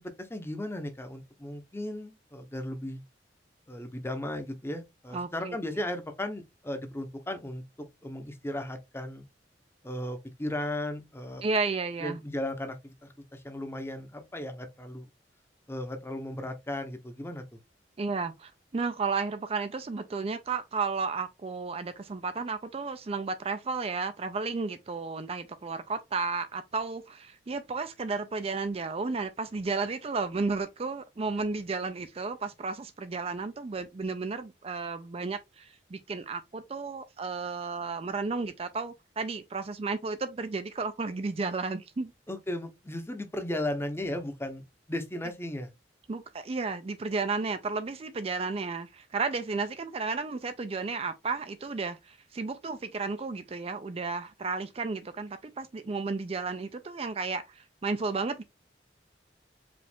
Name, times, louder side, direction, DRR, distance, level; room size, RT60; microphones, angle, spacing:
voice 1, 0.2-3.0 3.7-9.2 9.8-11.4 12.0-15.1 15.7-17.4 42.3-45.7, left 1 dB, 15° left, 0.8 m, -36 dB
voice 2, 5.1-5.6 11.4-12.2 18.0-42.1 46.1-58.4, right 4 dB, 35° right, 0.4 m, -33 dB
5.0 x 2.4 x 3.4 m
head